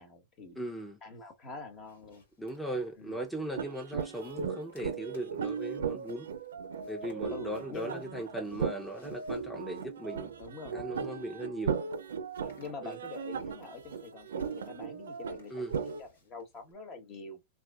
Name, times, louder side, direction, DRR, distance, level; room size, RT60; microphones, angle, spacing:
voice 1, 0.0-0.6 1.0-2.2 3.0-3.2 7.0-8.0 10.4-10.7 12.4-17.4, left 3 dB, 40° left, 1.2 m, -45 dB
voice 2, 0.6-1.0 2.4-6.3 6.9-10.3 10.7-11.8 12.8-13.0 15.5-15.7, right 1 dB, 5° left, 0.6 m, -38 dB
sound 1, 1.4-16.7, left 2 dB, 80° left, 1.7 m, -62 dB
sound 2, 3.6-16.0, right 6 dB, 85° right, 0.4 m, -37 dB
3.2 x 2.6 x 2.3 m
hypercardioid pair, 105°, 0 cm